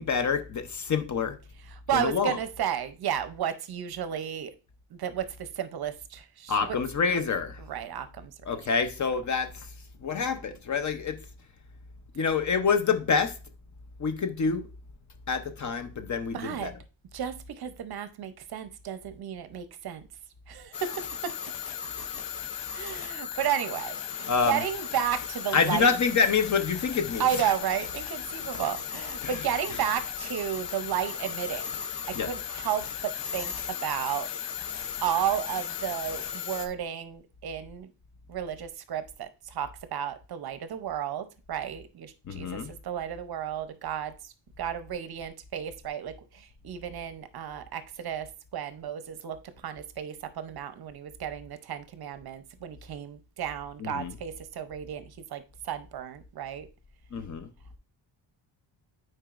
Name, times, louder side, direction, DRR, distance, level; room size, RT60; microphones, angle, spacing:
voice 1, 0.0-1.4 1.9-2.4 6.5-7.6 8.5-9.7 10.0-11.2 12.1-13.3 14.0-14.6 15.3-16.7 24.3-24.6 25.5-27.5 29.2-29.4 32.2-32.3 42.3-42.7 53.8-54.1 57.1-57.5, left 5 dB, 40° left, 0.7 m, -27 dB
voice 2, 1.9-4.5 4.9-6.8 7.7-8.3 16.3-16.7 17.1-20.0 20.5-21.3 22.7-25.9 27.2-31.7 32.1-34.3 35.0-37.9 38.3-55.0 55.3-56.7, right 9 dB, 55° right, 0.7 m, -33 dB
sound 1, 20.7-36.7, left 8 dB, 70° left, 0.8 m, -36 dB
8.9 x 4.6 x 2.4 m
wide cardioid pair, 150°, 45 cm